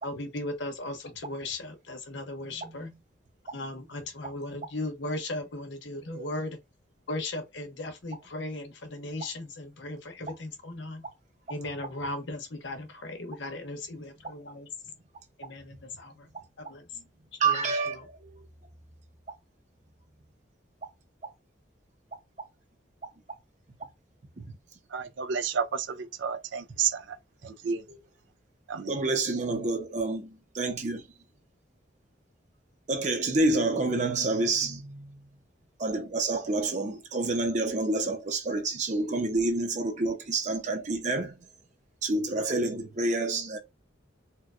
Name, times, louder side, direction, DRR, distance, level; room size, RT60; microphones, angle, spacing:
voice 1, 0.0-2.9 3.5-6.6 7.1-11.0 11.5-14.7 15.4-16.1 16.6-16.8 17.4-18.0, left 2 dB, 70° left, 0.8 m, -37 dB
voice 2, 2.5-2.9 6.1-6.3 17.4-18.2 24.4-24.5 27.9-28.0 28.9-31.0 32.9-35.2 35.8-41.3 42.0-43.6, right 2 dB, 40° right, 0.7 m, -28 dB
voice 3, 24.9-27.0 27.4-27.8 28.7-28.9, right 7 dB, 75° right, 0.5 m, -31 dB
4.4 x 2.2 x 2.4 m
head